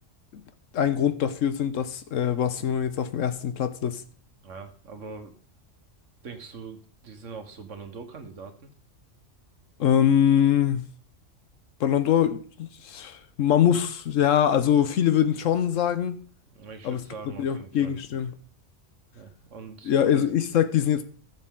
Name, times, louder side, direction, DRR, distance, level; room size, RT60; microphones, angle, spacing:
voice 1, 0.7-4.0 9.8-10.9 11.8-16.2 16.8-17.0 17.4-18.3 19.8-21.0, left 9 dB, 85° left, 1.2 m, -23 dB
voice 2, 4.4-5.3 6.2-8.7 16.6-17.9 19.1-19.9, right 5 dB, 75° right, 1.7 m, -42 dB
14.0 x 6.8 x 3.8 m
omnidirectional pair, 1.3 m